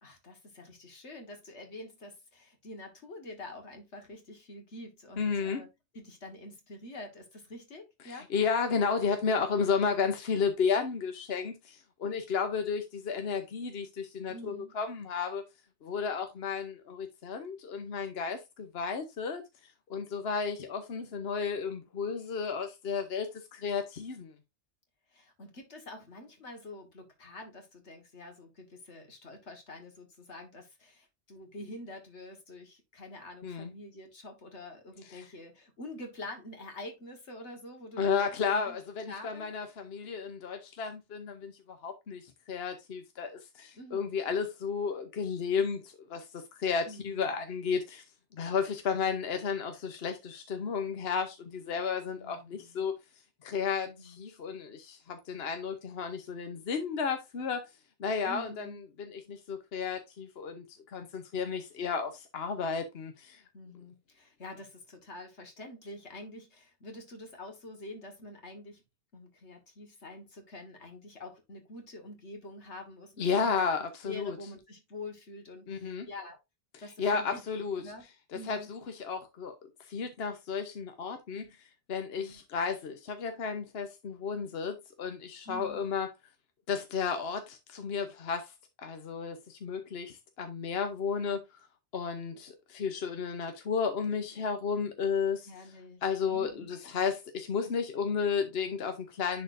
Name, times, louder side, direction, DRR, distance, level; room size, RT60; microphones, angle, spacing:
voice 1, 0.0-5.7 5.9-8.3 14.3-14.7 25.1-38.8 39.1-39.5 43.7-44.2 46.9-47.3 52.2-52.8 53.8-54.2 58.3-58.8 63.5-68.8 69.1-73.7 74.0-76.4 76.8-77.4 77.7-78.0 78.3-78.7 81.3-81.5 82.2-82.4 85.5-85.8 95.5-96.0 96.3-96.7, left 1 dB, 90° left, 2.0 m, -46 dB
voice 2, 5.2-5.6 8.1-15.4 15.8-19.4 19.9-24.3 33.4-33.7 35.1-35.3 38.0-48.0 48.3-52.9 53.4-57.7 58.0-63.4 73.2-74.4 75.7-76.1 77.0-77.8 78.3-79.6 79.9-81.5 81.9-86.1 86.7-88.5 88.8-91.4 91.9-95.5 96.0-99.4, left 5 dB, 65° left, 1.1 m, -33 dB
10.5 x 4.2 x 2.6 m
omnidirectional pair, 1.1 m